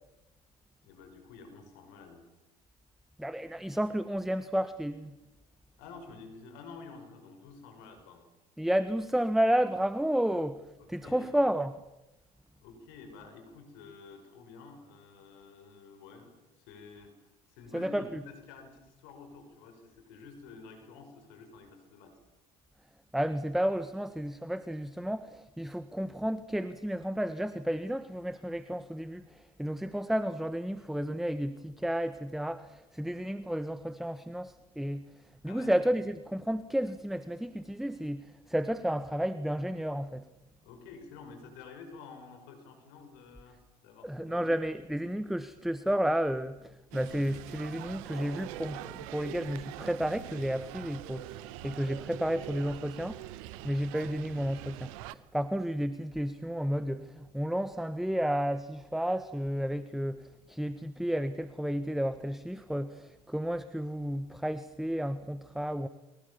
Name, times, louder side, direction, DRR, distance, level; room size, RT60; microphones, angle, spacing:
voice 1, 0.8-2.2 5.8-8.2 10.8-11.3 12.6-17.1 17.5-22.2 35.4-35.7 40.6-43.6 43.8-44.5, left 4 dB, 65° left, 6 dB, 5.9 m, -50 dB
voice 2, 3.2-5.1 8.6-10.6 10.9-11.7 17.7-18.2 23.1-35.1 35.4-40.2 44.0-53.2 53.6-65.9, equal, ahead, 13 dB, 1.3 m, -32 dB
sound 1, 46.9-55.1, right 16 dB, 65° right, 1.1 m, -44 dB
29.5 x 24.0 x 7.2 m, 0.98 s
figure-of-eight pair, 65°, 18 cm